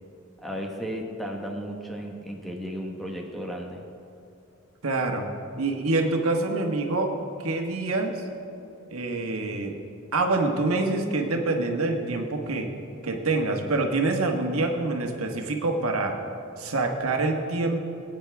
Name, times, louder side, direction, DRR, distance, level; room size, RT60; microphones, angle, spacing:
voice 1, 0.4-3.9, equal, ahead, 0 dB, 1.1 m, -34 dB
voice 2, 4.8-5.2 5.6-7.1 7.4-8.2 8.9-9.8 10.1-12.7 13.0-16.1 16.6-17.8, right 2 dB, 85° right, 2 dB, 1.4 m, -26 dB
20.0 x 9.3 x 3.5 m, 2.8 s
head